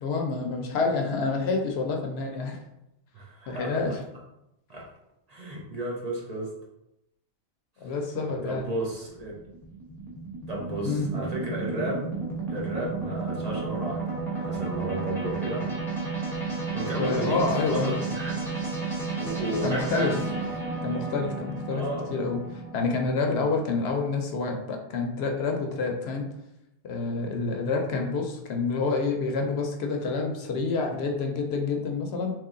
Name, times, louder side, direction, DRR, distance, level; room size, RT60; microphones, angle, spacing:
voice 1, 0.0-2.6 3.5-3.9 7.8-8.6 10.8-11.1 17.0-18.0 19.6-20.1 20.8-21.8 22.1-26.3 26.8-32.3, left 4 dB, 75° left, 2 dB, 0.9 m, -28 dB
voice 2, 3.1-4.0 4.7-4.8 5.3-6.5 7.8-7.9 8.4-9.4 10.5-12.1 12.5-15.7 16.7-18.4 19.2-20.1 21.7-22.1, right 1 dB, 40° right, -3 dB, 0.7 m, -33 dB
sound 1, 8.9-22.8, right 4 dB, ahead, 0.8 m, -32 dB
3.0 x 2.8 x 3.6 m, 0.86 s
omnidirectional pair, 1.1 m